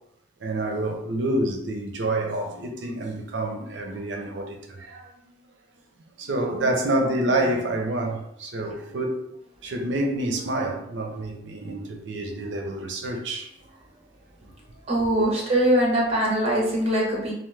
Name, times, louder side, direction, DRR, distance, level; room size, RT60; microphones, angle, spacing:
voice 1, 0.4-5.1 6.2-9.2 9.6-13.5, right 1 dB, 75° right, 0.6 m, -28 dB
voice 2, 14.9-17.3, right 1 dB, 35° right, 0.9 m, -22 dB
3.0 x 2.0 x 3.2 m
head